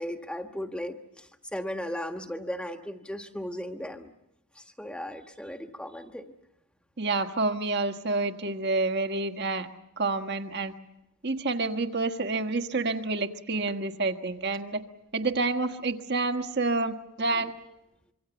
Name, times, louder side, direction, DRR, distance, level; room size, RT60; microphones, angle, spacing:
voice 1, 0.0-4.1 4.5-6.3, equal, 5° left, 6 dB, 1.4 m, -36 dB
voice 2, 7.0-9.7 10.0-10.8 11.2-14.8 15.1-17.8, right 3 dB, 50° right, 7 dB, 1.5 m, -28 dB
26.0 x 24.5 x 7.1 m, 0.86 s
head